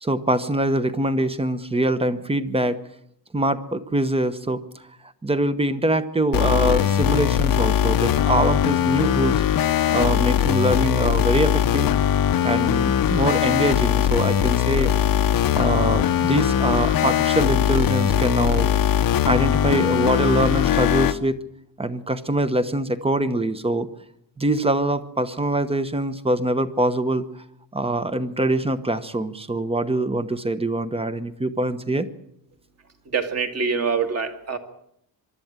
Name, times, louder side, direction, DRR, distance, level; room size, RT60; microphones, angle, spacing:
voice 1, 0.0-2.8 3.3-4.6 5.2-9.4 9.9-11.9 12.4-18.7 19.3-21.4 21.8-23.9 24.4-27.2 27.7-32.1, right 1 dB, 15° right, 11 dB, 1.0 m, -23 dB
sound 1, 6.3-21.1, left 10 dB, 50° left, 0.9 m, -20 dB
voice 2, 33.1-34.6, right 5 dB, 35° right, 6 dB, 2.2 m, -25 dB
24.0 x 12.0 x 9.0 m, 0.74 s
cardioid pair, 160°, 43 cm